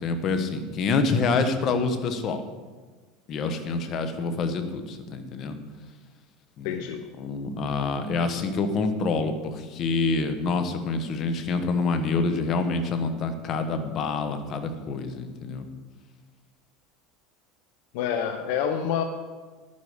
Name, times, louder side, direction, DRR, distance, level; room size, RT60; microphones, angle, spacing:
voice 1, 0.0-2.4 3.3-5.6 6.6-6.8 7.2-15.6, left 4 dB, 40° left, 8 dB, 1.2 m, -27 dB
voice 2, 6.6-7.1 17.9-19.0, left 8 dB, 70° left, 7 dB, 0.8 m, -27 dB
11.0 x 9.7 x 5.0 m, 1.3 s
supercardioid pair, 135°, 0 cm